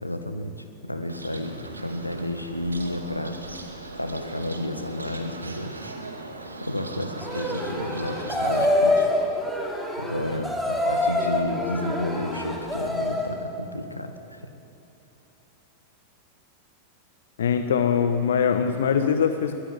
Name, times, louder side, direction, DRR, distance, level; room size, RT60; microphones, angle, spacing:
voice 1, 0.0-3.4 4.0-5.7 6.6-9.1 10.0-14.5, left 1 dB, 85° left, 8 dB, 1.8 m, -31 dB
Bird, 1.1-8.6, right 2 dB, 80° right, 2.1 m, -39 dB
sound 1, 7.2-13.3, left 1 dB, ahead, 6.2 m, -26 dB
voice 2, 17.4-19.6, left 7 dB, 65° left, 8 dB, 1.1 m, -22 dB
22.0 x 19.5 x 9.7 m, 2.9 s
figure-of-eight pair, 90°, 0 cm